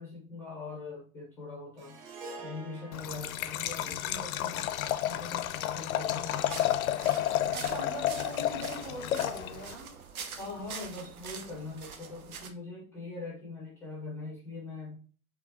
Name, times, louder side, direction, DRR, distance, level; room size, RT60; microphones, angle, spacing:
voice 1, 0.0-2.0 2.4-4.7 5.1-6.6 10.4-15.0, left 3 dB, 5° left, -4 dB, 0.4 m, -42 dB
Harp, 1.8-6.2, right 3 dB, 40° right, 0.8 m, -49 dB
Liquid, 2.9-9.8, left 12 dB, 70° left, 0.5 m, -31 dB
sound 1, 6.3-12.5, right 6 dB, 75° right, 0.9 m, -45 dB
voice 2, 7.5-9.9, right 3 dB, 60° right, -2 dB, 1.7 m, -41 dB
4.8 x 2.2 x 2.5 m, 0.40 s
hypercardioid pair, 125°, 44 cm